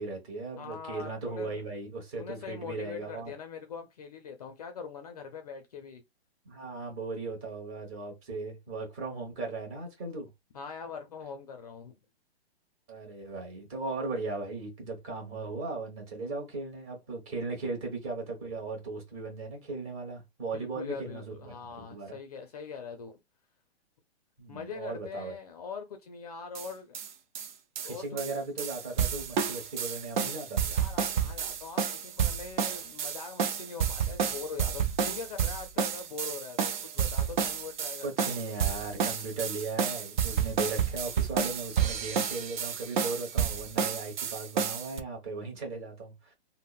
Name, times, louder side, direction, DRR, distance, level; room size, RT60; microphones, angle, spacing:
voice 1, 0.0-3.3 6.4-10.3 12.9-21.5 21.9-22.2 24.4-25.3 27.8-30.7 38.0-46.3, right 3 dB, 30° right, 1.2 m, -37 dB
voice 2, 0.6-1.6 2.2-6.0 10.5-11.9 20.5-23.2 24.5-26.9 27.8-28.3 30.7-38.4, left 5 dB, 40° left, 0.4 m, -42 dB
sound 1, 26.5-26.7 26.9-27.1 27.3-27.5 27.8-45.0, right 7 dB, 50° right, 0.4 m, -30 dB
3.6 x 2.0 x 2.3 m
hypercardioid pair, 160°, 32 cm